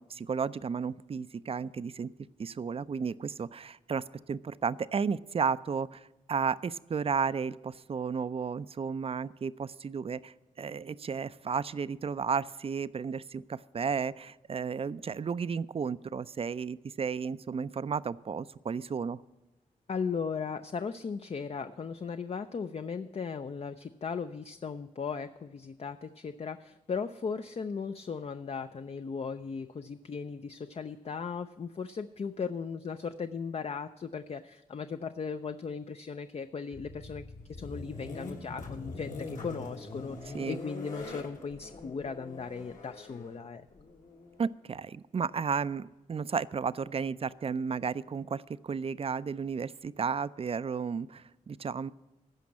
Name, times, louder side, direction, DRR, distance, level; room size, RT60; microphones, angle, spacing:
voice 1, 0.0-2.1 2.4-19.2 40.3-40.6 44.4-51.9, right 6 dB, 40° right, 17 dB, 0.4 m, -33 dB
voice 2, 19.9-43.7, left 5 dB, 45° left, 9 dB, 0.4 m, -37 dB
sound 1, 36.7-44.5, left 3 dB, 60° left, 1.6 m, -43 dB
14.5 x 5.2 x 8.4 m, 1.0 s
cardioid pair, 50°, 15 cm